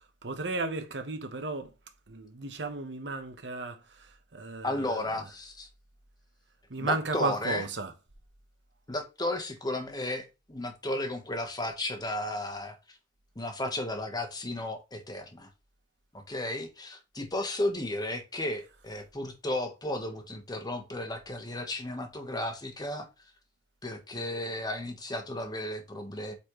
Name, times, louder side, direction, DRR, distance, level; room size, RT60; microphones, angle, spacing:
voice 1, 0.2-1.7 2.1-4.1 4.3-5.2 6.7-7.9, right 3 dB, 85° right, 1.1 m, -34 dB
voice 2, 4.6-5.7 6.8-7.6 8.9-12.8 13.3-15.5 16.1-23.1 23.8-26.3, left 1 dB, 25° left, 1.3 m, -34 dB
8.4 x 4.2 x 3.2 m
head